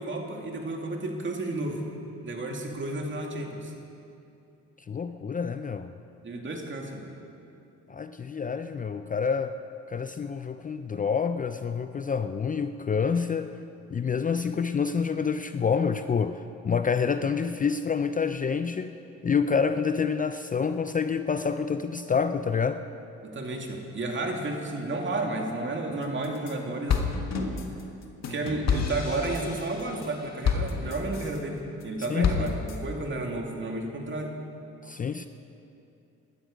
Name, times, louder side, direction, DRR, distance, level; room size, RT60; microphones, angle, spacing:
voice 1, 0.0-1.8 2.2-3.7 6.2-7.1 23.2-27.1 27.3-27.6 28.3-34.3, right 2 dB, 40° right, 1 dB, 2.3 m, -32 dB
voice 2, 4.9-5.9 7.9-9.6 9.9-13.6 13.9-19.0 19.2-22.8 32.1-32.6 34.8-35.3, left 6 dB, 25° left, 9 dB, 0.5 m, -28 dB
sound 1, 26.0-26.5 26.9-31.4 31.8-32.8, left 6 dB, 60° left, 1.6 m, -29 dB
17.0 x 12.5 x 5.2 m, 2.7 s
cardioid pair, 90°, 30 cm